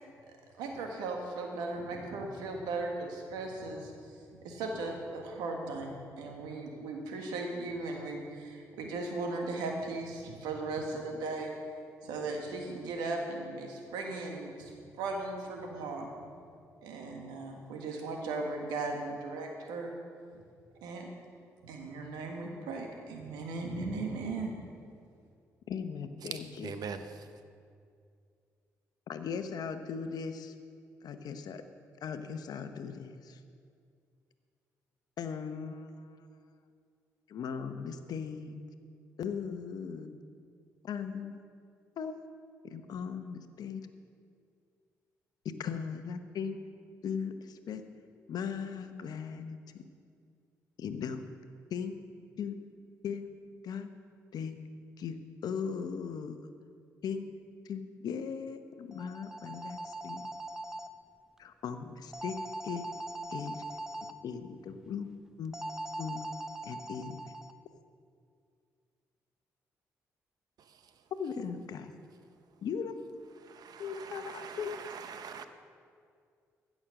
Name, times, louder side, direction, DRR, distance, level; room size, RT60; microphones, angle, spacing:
voice 1, 0.6-3.9 4.4-11.5 12.0-16.1 16.8-19.9 20.3-20.4 20.8-21.1 21.6-24.5, right 3 dB, 85° right, 1.6 m, -37 dB
voice 2, 25.7-26.7 29.1-30.5 31.0-31.6 32.0-33.4 35.2-36.2 37.3-38.6 39.2-40.2 40.8-41.4 42.0-42.1 42.6-43.8 45.6-46.6 47.0-47.8 48.3-49.6 50.8-51.2 51.7-52.0 52.4-52.6 53.0-53.3 53.6-53.9 54.3-54.6 55.0-56.4 57.0-57.3 57.6-60.3 61.4-62.4 62.6-62.8 63.3-63.6 64.2-65.1 65.4-65.6 66.0-66.2 66.6-67.3 71.2-71.9 72.6-73.0 73.8-74.7, left 6 dB, 70° left, 0.9 m, -38 dB
voice 3, 26.2-27.3 70.6-71.0 73.4-75.4, right 6 dB, 65° right, 0.8 m, -43 dB
sound 1, 58.9-60.9 62.1-64.1 65.5-67.5, right 1 dB, 5° right, 0.6 m, -41 dB
15.5 x 6.3 x 6.4 m
supercardioid pair, 50°, 7 cm